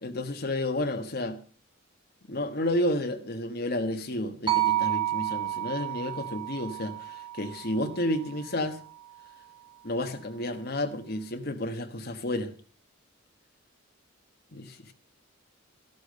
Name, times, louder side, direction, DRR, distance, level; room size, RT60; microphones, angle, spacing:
voice 1, 0.0-1.4 2.3-8.8 9.8-12.5 14.5-14.9, left 1 dB, 50° left, 1.4 m, -31 dB
sound 1, 4.5-8.7, right 14 dB, 20° right, 1.6 m, -31 dB
14.5 x 12.0 x 6.4 m
head